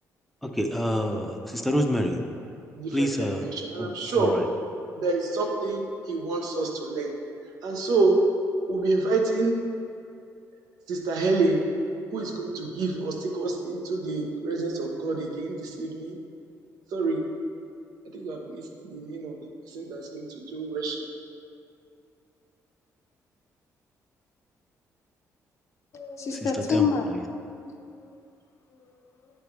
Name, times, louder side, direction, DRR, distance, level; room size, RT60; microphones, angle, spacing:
voice 1, 0.4-2.2 2.9-3.5 3.8-4.5 26.4-27.2, equal, ahead, 3 dB, 0.5 m, -28 dB
voice 2, 2.8-3.1 3.4-4.3 5.0-5.8 6.1-7.1 7.6-8.2 8.7-9.5 10.9-11.6 12.1-16.2 16.9-17.2 18.1-18.6 18.9-19.4 19.7-21.0, right 3 dB, 90° right, 0 dB, 0.9 m, -27 dB
voice 3, 25.9-27.1 27.4-28.1 28.7-28.9, left 5 dB, 50° left, 3 dB, 0.7 m, -28 dB
9.1 x 3.5 x 4.7 m, 2.4 s
cardioid pair, 115°, 6 cm